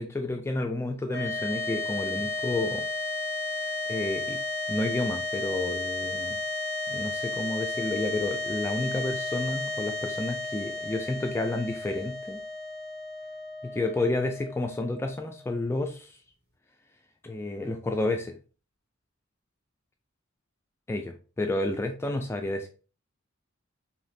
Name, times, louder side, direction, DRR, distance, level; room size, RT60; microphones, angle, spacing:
voice 1, 0.0-2.8 3.6-4.4 4.7-6.4 6.9-12.4 13.6-16.2 17.2-18.3 20.9-22.7, left 2 dB, 10° left, 4 dB, 0.3 m, -30 dB
sound 1, 1.1-15.5, left 3 dB, 30° right, 1.9 m, -33 dB
5.0 x 2.8 x 2.6 m, 0.35 s
head